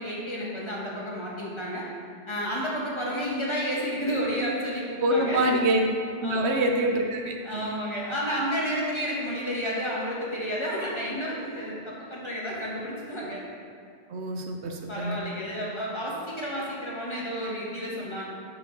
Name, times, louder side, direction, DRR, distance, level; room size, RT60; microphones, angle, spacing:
voice 1, 0.0-1.8 2.3-5.6 6.2-6.8 7.4-13.4 14.9-18.2, equal, 30° left, -5 dB, 1.2 m, -31 dB
voice 2, 5.0-5.9 6.2-7.8 14.1-15.2, right 1 dB, 85° right, 2 dB, 1.0 m, -26 dB
6.8 x 5.6 x 3.9 m, 2.3 s
omnidirectional pair, 1.1 m